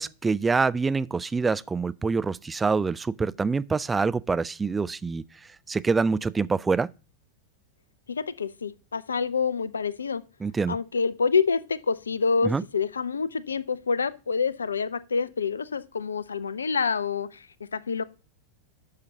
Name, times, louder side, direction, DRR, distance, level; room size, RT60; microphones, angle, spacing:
voice 1, 0.0-5.2 5.7-6.9 10.4-10.8 12.4-12.6, right 4 dB, 15° right, 0.3 m, -25 dB
voice 2, 8.1-10.2 10.7-18.0, left 5 dB, 75° left, 0.5 m, -27 dB
11.5 x 6.7 x 2.8 m
figure-of-eight pair, 90°, 0 cm